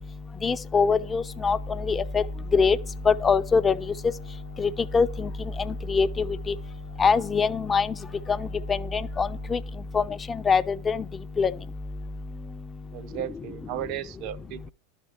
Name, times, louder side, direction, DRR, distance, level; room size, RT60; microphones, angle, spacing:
voice 1, 0.4-1.6 1.9-2.2 2.5-2.8 3.1-3.7 4.9-5.1 5.9-6.1 7.0-7.9 9.2-9.6 10.0-10.1 10.5-11.0 11.4-11.5, left 5 dB, 20° left, 0.4 m, -22 dB
sound 1, 1.1-9.6, right 1 dB, 85° left, 0.6 m, -48 dB
voice 2, 12.9-14.7, right 12 dB, 50° right, 0.4 m, -35 dB
11.5 x 4.4 x 5.8 m
figure-of-eight pair, 85°, 0 cm